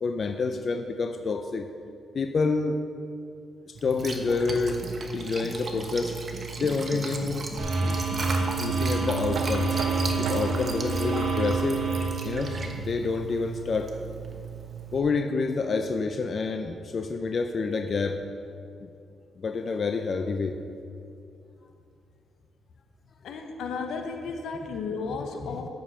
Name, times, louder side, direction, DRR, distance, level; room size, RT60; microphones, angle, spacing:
voice 1, 0.0-1.7 2.1-2.8 3.7-4.8 5.1-6.2 6.6-7.5 8.6-9.8 10.2-11.8 12.2-13.9 14.9-18.2 18.8-18.9 19.4-20.6, left 4 dB, 40° left, 6 dB, 0.5 m, -28 dB
Liquid, 3.8-15.0, right 4 dB, 35° right, 1.0 m, -36 dB
sound 1, 7.6-12.7, right 3 dB, 60° right, 2.2 m, -28 dB
Knock, 9.3-15.1, right 4 dB, 85° right, 0.9 m, -41 dB
voice 2, 23.2-25.7, left 4 dB, 80° left, 5 dB, 1.0 m, -34 dB
13.5 x 5.2 x 5.5 m, 2.5 s
cardioid pair, 135°, 0 cm